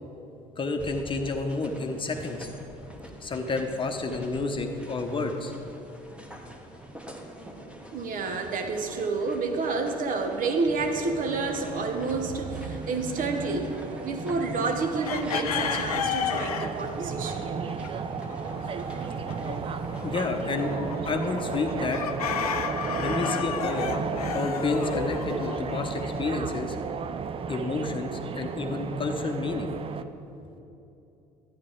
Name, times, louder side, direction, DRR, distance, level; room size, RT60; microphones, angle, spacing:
voice 1, 0.6-2.5 3.2-5.5 20.0-20.7 21.1-22.0 23.0-24.0 24.3-26.8 27.5-29.7, left 3 dB, 25° left, 4 dB, 0.9 m, -30 dB
sound 1, 0.8-20.7, equal, 5° right, 1.2 m, -46 dB
voice 2, 7.9-13.7 14.0-17.5, right 3 dB, 45° right, 5 dB, 1.0 m, -29 dB
sound 2, 10.6-30.0, right 6 dB, 30° right, 0.5 m, -34 dB
sound 3, 15.0-26.2, left 8 dB, 85° left, 0.4 m, -34 dB
11.5 x 8.6 x 3.8 m, 2.9 s
hypercardioid pair, 60°, 19 cm